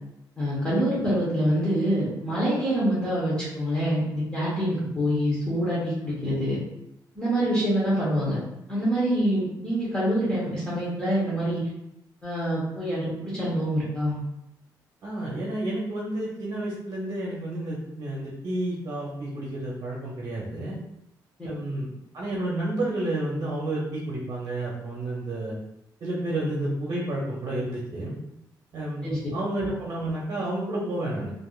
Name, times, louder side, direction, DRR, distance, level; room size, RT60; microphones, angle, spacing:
voice 1, 0.4-6.6 7.1-8.4 8.7-11.6 12.2-14.2 21.4-21.5 29.0-29.2, equal, 10° left, -9 dB, 1.0 m, -25 dB
voice 2, 15.0-20.8 21.4-21.9 22.1-25.6 26.0-28.2 28.7-31.3, right 1 dB, 50° right, -4 dB, 0.8 m, -30 dB
3.4 x 2.6 x 2.4 m, 0.85 s
cardioid pair, 135°, 8 cm